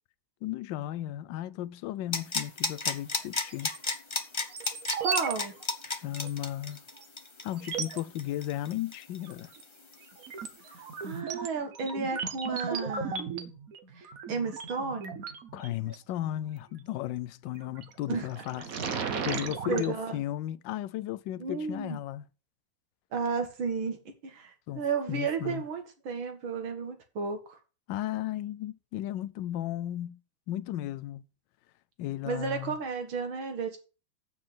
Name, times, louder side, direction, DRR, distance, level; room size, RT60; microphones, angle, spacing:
voice 1, 0.4-3.7 5.8-6.8 7.4-9.5 15.5-18.6 19.2-22.2 24.7-24.8 25.1-25.6 27.9-30.2 30.5-31.2 32.0-32.8, left 13 dB, 75° left, 1.2 m, -35 dB
sound 1, 2.1-9.6 9.9-10.0, left 3 dB, 35° left, 0.4 m, -32 dB
sound 2, 3.5-4.0 4.5-5.3 5.6-5.7 6.2-6.3 7.0-7.1 7.5-8.0 9.2-9.6 10.0-16.0 17.6-17.9 18.3-19.9, right 6 dB, 50° right, 1.3 m, -36 dB
voice 2, 5.0-5.5 11.0-13.5 14.0-15.2 18.1-18.3 19.2-20.2 21.4-22.0 23.1-27.6 32.3-33.8, right 5 dB, 75° right, 2.4 m, -33 dB
7.2 x 6.4 x 7.6 m
omnidirectional pair, 2.2 m